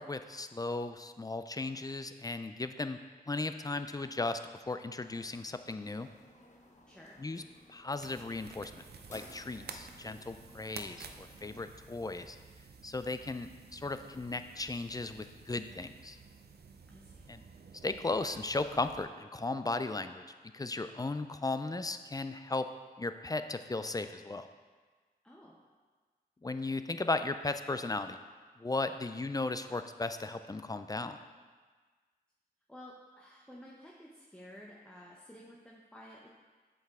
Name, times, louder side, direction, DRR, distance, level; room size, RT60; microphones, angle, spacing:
voice 1, 0.0-3.0 3.3-4.4 4.7-6.1 7.2-7.4 7.7-8.8 9.1-12.4 12.8-16.2 17.3-17.4 17.8-20.2 20.5-22.6 23.0-24.5 26.4-28.2 28.6-31.2, left 3 dB, 20° left, 10 dB, 0.3 m, -36 dB
sound 1, 5.0-11.7, left 1 dB, 45° left, 0.9 m, -58 dB
voice 2, 6.9-7.2 16.9-17.3 25.2-25.6 32.7-36.3, equal, 5° left, -3 dB, 0.7 m, -52 dB
sound 2, 8.0-19.1, right 5 dB, 70° right, 0.5 m, -52 dB
7.7 x 4.7 x 3.6 m, 1.4 s
wide cardioid pair, 55°, 17 cm